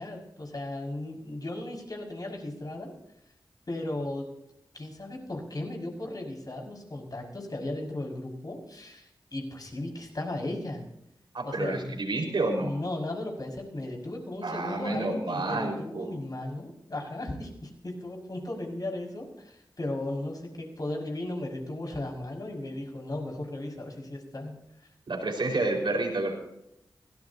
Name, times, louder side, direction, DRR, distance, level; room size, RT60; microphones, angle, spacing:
voice 1, 0.0-2.9 3.7-4.3 4.7-10.8 11.4-12.0 12.6-24.5, left 1 dB, 50° left, 0 dB, 6.1 m, -36 dB
voice 2, 11.3-12.7 14.4-16.1 25.1-26.4, right 2 dB, 75° right, 1 dB, 5.1 m, -29 dB
23.5 x 17.5 x 2.9 m, 0.80 s
wide cardioid pair, 60°, 8 cm